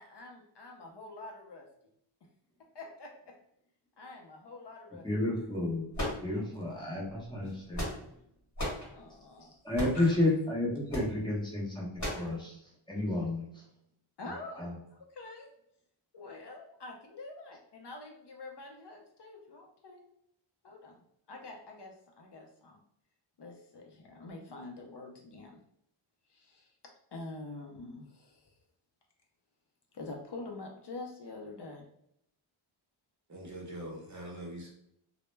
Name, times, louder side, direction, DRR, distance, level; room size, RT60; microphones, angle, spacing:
voice 1, 0.0-1.7 2.7-3.3 4.0-5.1 8.9-9.6 9.9-10.2 14.2-14.7 14.9-15.5 16.1-20.0 20.6-20.9 21.3-22.8 23.4-25.6 26.3-26.7 27.1-28.5 29.9-31.9, left 2 dB, 55° left, 1 dB, 0.5 m, -46 dB
voice 2, 5.0-5.9 6.2-7.8 9.6-12.6 12.9-13.6 14.6-14.8, left 2 dB, 10° left, -4 dB, 0.7 m, -31 dB
sound 1, 5.9-6.7 7.5-8.2 8.6-8.9 9.7-10.1 10.9-11.1 12.0-12.3, left 1 dB, 35° left, 1.1 m, -35 dB
voice 3, 33.3-34.7, right 1 dB, 35° right, -2 dB, 0.7 m, -43 dB
2.1 x 2.0 x 3.1 m, 0.73 s
wide cardioid pair, 95°, 50 cm